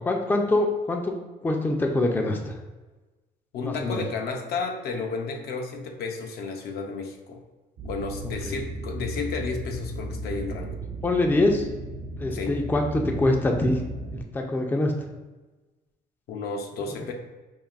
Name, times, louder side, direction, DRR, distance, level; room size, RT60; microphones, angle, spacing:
voice 1, 0.0-1.2 1.4-2.6 3.6-4.0 8.4-8.6 11.0-11.7 12.2-13.8 14.1-14.9, left 2 dB, 10° left, 3 dB, 0.4 m, -24 dB
voice 2, 3.5-7.4 7.8-10.8 12.3-12.6 16.3-17.1, left 4 dB, 70° left, 3 dB, 0.6 m, -32 dB
sound 1, 7.8-14.2, right 1 dB, 55° right, 0.5 m, -35 dB
5.2 x 2.5 x 2.4 m, 1.2 s
cardioid pair, 110°, 17 cm